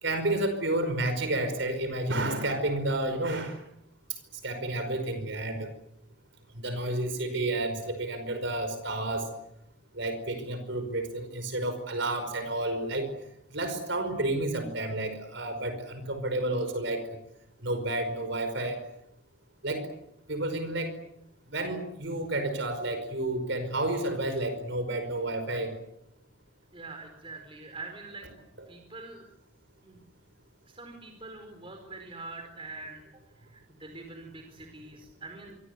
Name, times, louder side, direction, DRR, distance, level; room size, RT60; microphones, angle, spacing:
voice 1, 0.0-3.6 4.4-5.7 6.6-9.3 9.9-13.1 13.5-17.0 17.6-18.8 19.6-19.9 20.3-20.9 21.5-25.7, right 1 dB, 60° right, 8 dB, 5.2 m, -30 dB
voice 2, 26.7-28.3 28.7-29.3 29.8-30.0 30.7-33.1 33.4-35.6, right 3 dB, 25° right, 4 dB, 4.6 m, -44 dB
27.5 x 25.5 x 8.2 m, 0.79 s
head